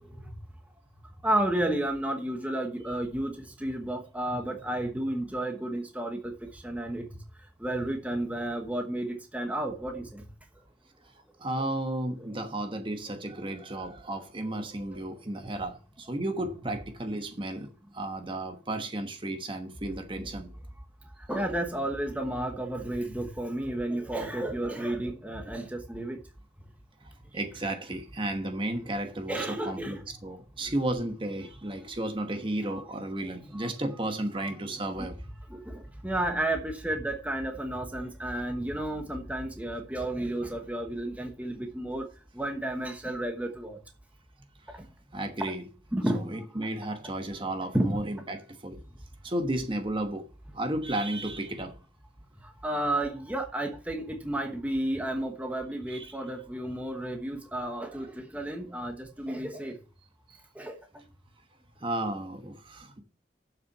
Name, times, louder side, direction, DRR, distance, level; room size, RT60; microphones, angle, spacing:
voice 1, 1.2-7.1 7.6-10.2 21.3-26.2 29.3-30.0 32.7-32.8 33.2-33.7 34.4-34.5 35.0-35.1 35.5-42.1 42.3-43.8 44.7-44.8 45.9-46.3 47.7-48.0 52.6-59.7 60.6-60.8, right 1 dB, 10° right, 1.1 m, -32 dB
voice 2, 11.4-20.5 27.3-35.2 45.1-45.6 46.1-48.8 49.2-50.2 50.5-51.7 55.9-56.2 57.8-57.9 60.3-60.4 61.8-63.0, right 1 dB, 30° right, 1.2 m, -33 dB
7.4 x 6.0 x 7.8 m
head